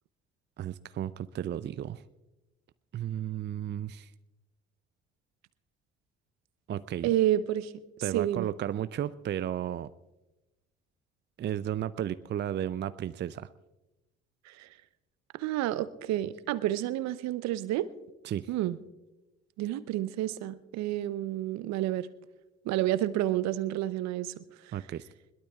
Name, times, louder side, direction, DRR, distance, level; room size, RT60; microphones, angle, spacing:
voice 1, 0.6-2.0 2.9-4.1 6.7-7.1 8.0-9.9 11.4-13.5 18.2-18.5 24.7-25.1, right 10 dB, 35° right, 15 dB, 0.5 m, -34 dB
voice 2, 7.0-7.7 8.1-8.5 14.5-14.7 15.3-17.9 18.5-18.8 19.6-22.1 22.6-24.4, right 13 dB, 60° right, 15 dB, 0.8 m, -29 dB
22.0 x 21.5 x 2.4 m, 1.0 s
hypercardioid pair, 55°, 30 cm